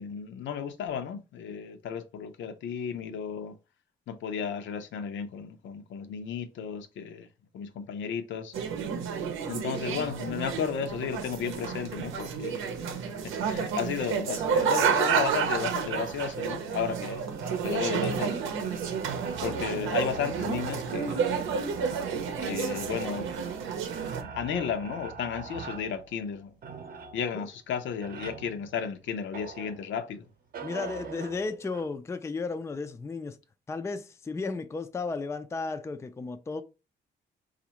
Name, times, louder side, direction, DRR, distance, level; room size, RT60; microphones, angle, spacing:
voice 1, 0.0-3.5 4.1-7.3 7.5-8.5 9.5-12.8 13.2-17.2 17.6-18.8 19.4-21.3 22.4-23.3 24.2-26.5 27.1-30.2, left 7 dB, 70° left, 0.6 m, -34 dB
sound 1, 8.5-24.2, right 6 dB, 85° right, 0.7 m, -30 dB
sound 2, 17.3-30.1 30.5-31.9, right 6 dB, 50° right, 0.7 m, -44 dB
voice 2, 30.6-33.4 33.7-36.6, left 4 dB, 15° left, 0.4 m, -34 dB
4.1 x 2.5 x 2.9 m
cardioid pair, 90°, 20 cm